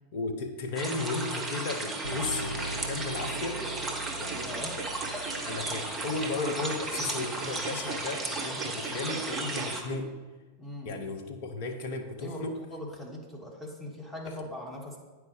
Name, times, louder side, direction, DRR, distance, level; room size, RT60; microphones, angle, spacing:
voice 1, 0.1-3.6 4.2-4.9 5.4-10.1 10.8-12.5, left 3 dB, 50° left, 4 dB, 0.9 m, -35 dB
sound 1, 0.8-9.8, right 2 dB, 10° right, 1.1 m, -35 dB
sound 2, 2.0-8.0, right 2 dB, 90° left, 1.0 m, -41 dB
sound 3, 3.3-9.7, right 7 dB, 40° right, 0.4 m, -41 dB
voice 2, 4.3-4.7 8.6-8.8 10.6-11.0 12.2-15.0, left 1 dB, 5° left, -2 dB, 1.5 m, -41 dB
9.3 x 4.8 x 3.5 m, 1.3 s
figure-of-eight pair, 90°, 0 cm